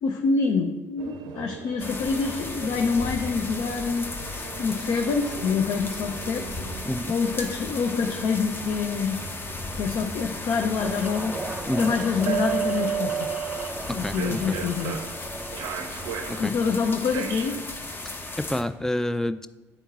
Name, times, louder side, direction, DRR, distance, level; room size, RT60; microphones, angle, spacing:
voice 1, 0.0-6.5 7.1-9.2 9.8-11.4 11.8-13.2 13.9-15.0 16.4-17.6, left 5 dB, 60° left, 4 dB, 0.5 m, -26 dB
sound 1, 1.0-18.8, right 8 dB, 65° right, 0.5 m, -36 dB
sound 2, 1.8-18.6, left 2 dB, 30° left, 0.8 m, -36 dB
sound 3, 10.8-16.7, right 3 dB, 20° right, 0.7 m, -38 dB
voice 2, 13.9-14.6 16.3-16.5 18.4-19.5, left 1 dB, 5° left, 12 dB, 0.3 m, -28 dB
9.1 x 3.7 x 4.1 m, 1.2 s
hypercardioid pair, 50°, 8 cm